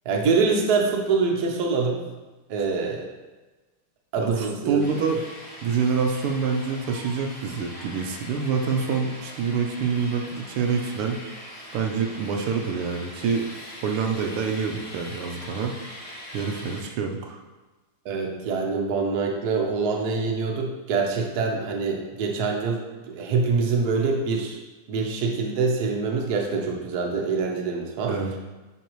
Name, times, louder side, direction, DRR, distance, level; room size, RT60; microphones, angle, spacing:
voice 1, 0.0-2.0 2.5-3.1 4.1-4.8 18.0-24.6 24.9-28.2, right 4 dB, 55° right, 0 dB, 1.3 m, -25 dB
voice 2, 4.2-5.2 5.6-11.2 11.7-13.5 13.8-15.7 16.3-17.4 28.1-28.4, right 5 dB, 85° right, 2 dB, 1.7 m, -26 dB
sound 1, 4.8-16.8, equal, 5° left, 2.0 m, -42 dB
11.0 x 4.0 x 3.1 m, 1.2 s
omnidirectional pair, 2.4 m